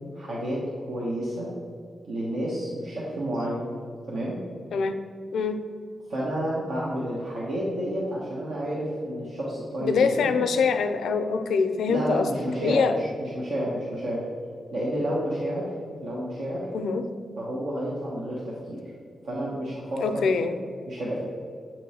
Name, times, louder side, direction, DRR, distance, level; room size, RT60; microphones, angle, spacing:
voice 1, 0.1-0.6 0.9-1.5 2.1-3.6 4.1-4.3 6.1-10.5 11.9-14.2 14.7-15.7 16.0-16.7 17.4-18.8 19.2-20.3 20.9-21.2, equal, 80° right, -6 dB, 1.0 m, -30 dB
voice 2, 9.8-12.3 12.6-12.9 16.7-17.0 20.0-20.6, left 5 dB, 90° left, 8 dB, 0.4 m, -24 dB
7.7 x 3.0 x 4.2 m, 2.3 s
cardioid pair, 75°, 0 cm